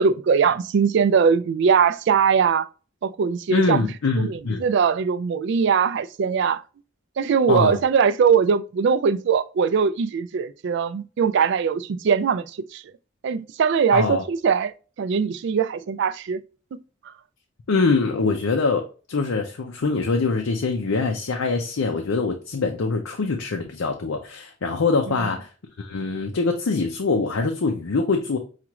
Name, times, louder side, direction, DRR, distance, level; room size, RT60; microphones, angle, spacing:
voice 1, 0.0-2.7 3.0-3.9 4.2-6.6 7.2-12.4 12.7-12.8 13.2-14.7 15.0-16.4 16.7-16.8, right 6 dB, 60° right, 0.3 m, -21 dB
voice 2, 3.5-4.6 7.5-7.8 13.9-14.2 17.7-25.5 25.8-28.4, left 4 dB, 80° left, 0.6 m, -23 dB
5.8 x 2.4 x 2.9 m
head